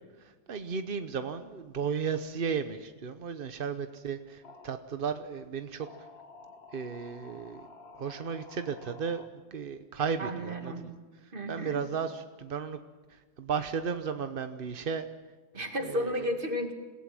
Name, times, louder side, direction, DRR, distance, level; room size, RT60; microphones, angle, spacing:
voice 1, 0.5-5.9 6.7-7.7 8.0-9.2 9.5-10.9 11.5-12.8 13.4-15.1 15.9-16.1, right 6 dB, 50° right, 9 dB, 0.6 m, -34 dB
sound 1, 4.2-4.9 5.8-9.3, left 3 dB, 35° left, 1.7 m, -51 dB
voice 2, 10.2-10.8 11.3-11.8 15.5-16.7, equal, 25° right, 6 dB, 2.2 m, -33 dB
27.0 x 17.0 x 7.7 m, 1.3 s
omnidirectional pair, 2.1 m